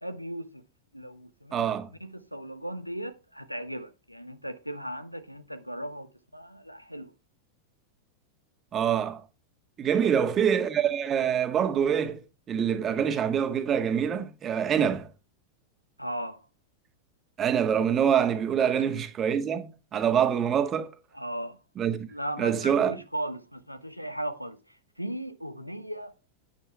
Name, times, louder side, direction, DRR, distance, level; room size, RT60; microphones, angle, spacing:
voice 1, 0.0-0.6 0.9-1.7 2.0-7.1 10.0-10.1 16.0-16.4 18.7-18.8 21.1-21.6 22.1-26.1, right 1 dB, 90° left, 0.9 m, -37 dB
voice 2, 1.5-1.9 8.7-9.2 9.8-12.2 12.5-15.1 17.4-20.9 21.8-22.1 22.4-22.9, right 8 dB, 25° right, 1.5 m, -25 dB
9.3 x 9.1 x 3.3 m
figure-of-eight pair, 90°, 0 cm